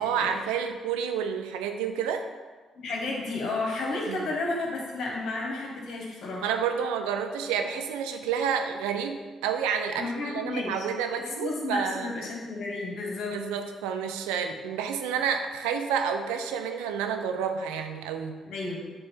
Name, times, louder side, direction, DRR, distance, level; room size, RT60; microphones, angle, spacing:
voice 1, 0.0-2.3 4.1-4.3 6.4-12.1 13.3-18.4, right 7 dB, 80° right, 5 dB, 0.5 m, -29 dB
voice 2, 2.7-6.4 10.0-10.9 11.4-13.4 18.4-18.9, left 2 dB, 60° left, -2 dB, 1.5 m, -32 dB
8.8 x 3.2 x 3.5 m, 1.3 s
hypercardioid pair, 45°, 0 cm